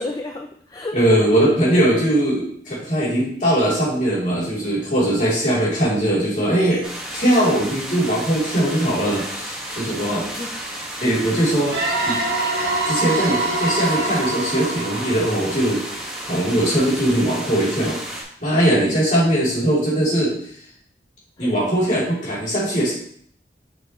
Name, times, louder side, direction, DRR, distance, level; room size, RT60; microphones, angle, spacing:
voice 1, 0.0-1.2 9.9-10.6 18.8-19.0 21.4-21.5, left 1 dB, 20° left, 3 dB, 0.4 m, -32 dB
voice 2, 0.9-10.3 10.7-11.7 12.0-12.2 12.9-15.8 16.3-18.0 18.4-20.3 21.4-22.9, right 1 dB, 45° left, -7 dB, 3.2 m, -20 dB
sound 1, 6.8-18.2, right 1 dB, 5° right, 1.5 m, -33 dB
sound 2, 11.7-16.3, right 2 dB, 65° right, 1.9 m, -25 dB
6.6 x 6.5 x 3.1 m, 0.64 s
head